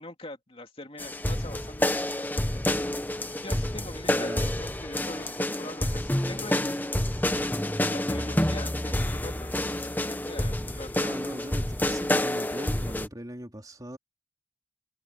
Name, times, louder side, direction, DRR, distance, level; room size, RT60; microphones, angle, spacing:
voice 1, 0.0-1.9 2.2-2.3 2.5-7.0 7.9-11.0, left 2 dB, 30° left, 2.7 m, -43 dB
sound 1, 1.0-13.1, left 1 dB, 10° left, 1.0 m, -28 dB
voice 2, 4.1-4.5 11.0-14.0, equal, 20° right, 3.1 m, -39 dB
head